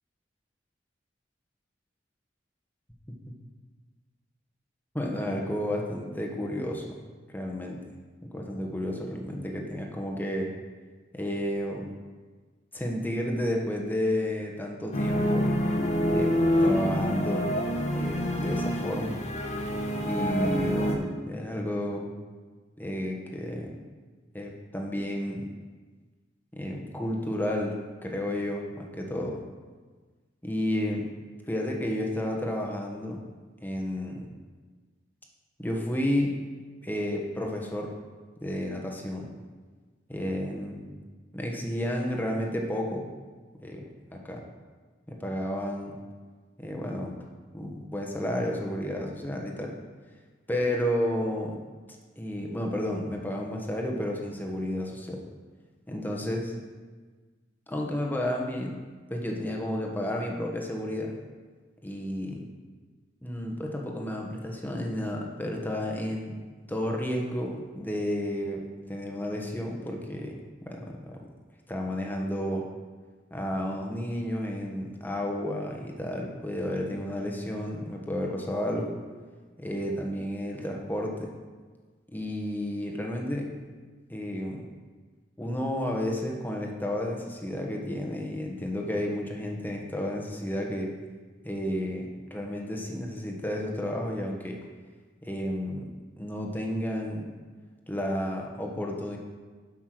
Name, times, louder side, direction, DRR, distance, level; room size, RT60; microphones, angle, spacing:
voice 1, 4.9-6.9 7.3-7.8 8.3-10.5 11.1-11.9 12.7-15.5 16.1-17.5 17.9-19.2 20.0-22.1 22.8-23.8 24.3-25.5 26.5-27.8 28.0-29.4 30.4-31.1 31.5-33.2 33.6-34.3 35.6-36.3 36.8-37.9 38.4-39.3 40.1-40.9 41.3-43.1 43.6-44.4 45.1-46.0 46.6-47.2 47.5-49.7 50.5-51.6 52.2-55.2 55.9-56.5 57.7-58.8 59.1-61.2 61.8-62.5 63.2-66.4 66.7-68.6 68.9-70.3 70.7-71.2 71.7-72.6 73.3-78.9 79.6-81.3 82.1-83.5 84.1-84.7 85.4-90.9 91.4-94.6 95.2-95.9 96.2-97.3 97.9-99.2, left 1 dB, 10° left, 0 dB, 1.3 m, -31 dB
sound 1, 14.9-20.9, equal, 40° left, 1.3 m, -27 dB
11.5 x 5.7 x 6.1 m, 1.4 s
head